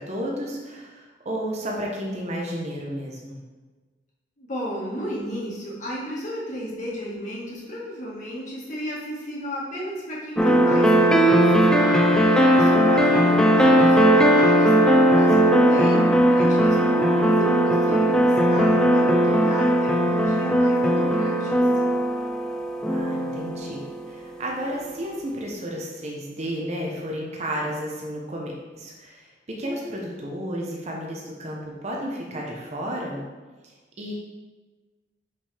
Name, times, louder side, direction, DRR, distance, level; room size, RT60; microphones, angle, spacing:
voice 1, 0.0-3.4 12.9-13.0 22.9-23.8 24.1-33.2 34.0-34.1, equal, 35° right, -2 dB, 0.8 m, -32 dB
voice 2, 4.4-14.7 15.1-21.9, equal, 45° left, -6 dB, 1.7 m, -33 dB
sound 1, 10.4-23.9, equal, 5° left, 0.3 m, -18 dB
5.3 x 5.3 x 3.4 m, 1.3 s
head